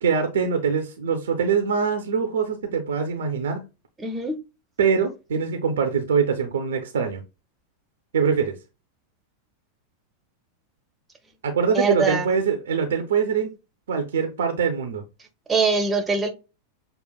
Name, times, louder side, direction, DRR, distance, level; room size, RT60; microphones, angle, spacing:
voice 1, 0.0-3.6 4.8-7.2 8.1-8.5 11.4-13.5 13.9-15.0, right 6 dB, 65° right, 0.6 m, -23 dB
voice 2, 4.0-4.4 11.7-12.3 15.5-16.3, right 4 dB, 15° right, 0.9 m, -22 dB
6.4 x 2.4 x 2.3 m
figure-of-eight pair, 90°, 0 cm